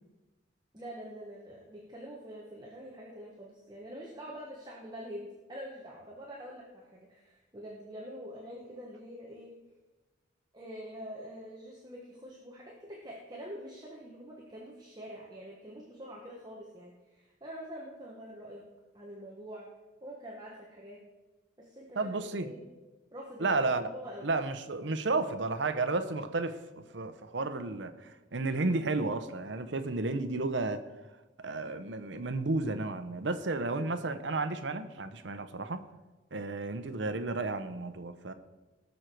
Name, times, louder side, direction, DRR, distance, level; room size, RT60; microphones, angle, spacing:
voice 1, 0.7-9.5 10.5-18.6 18.9-19.7 20.0-21.0 21.6-22.1 22.4-22.6 23.1-24.3, equal, 20° right, -3 dB, 1.3 m, -45 dB
voice 2, 22.0-22.5 23.4-23.9 24.2-30.8 31.4-35.8 36.3-38.3, right 3 dB, 75° right, 10 dB, 0.8 m, -32 dB
18.5 x 6.6 x 4.5 m, 1.2 s
head